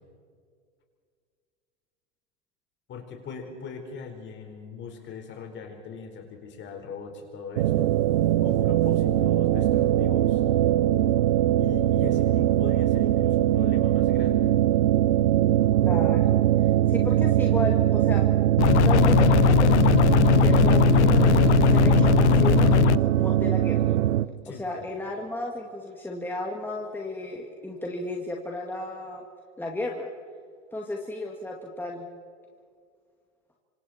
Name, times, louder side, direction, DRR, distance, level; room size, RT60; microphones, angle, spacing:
voice 1, 2.9-7.9 8.4-10.4 11.6-14.5 24.4-24.9, left 5 dB, 35° left, 4 dB, 4.7 m, -40 dB
sound 1, 7.6-24.3, right 13 dB, 75° right, 0.9 m, -21 dB
voice 2, 15.8-16.5 16.9-18.3 18.8-23.8 24.5-29.2 29.6-30.1 30.7-32.1, left 2 dB, 5° left, 0 dB, 2.1 m, -34 dB
sound 2, 18.6-23.0, left 17 dB, 80° left, 0.6 m, -19 dB
27.0 x 25.5 x 4.4 m, 2.1 s
hypercardioid pair, 120°, 34 cm